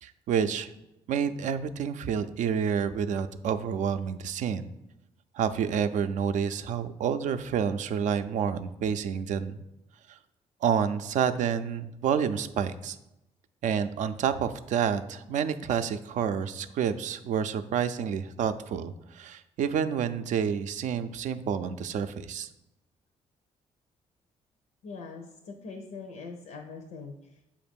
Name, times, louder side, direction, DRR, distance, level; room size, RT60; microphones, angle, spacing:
voice 1, 0.0-0.7 1.1-4.7 5.3-9.6 10.1-10.2 10.6-13.0 13.6-22.5, right 7 dB, 70° right, 11 dB, 0.4 m, -29 dB
voice 2, 24.8-27.4, left 4 dB, 85° left, 3 dB, 0.6 m, -42 dB
7.1 x 2.5 x 5.2 m, 0.91 s
cardioid pair, 80°, 13 cm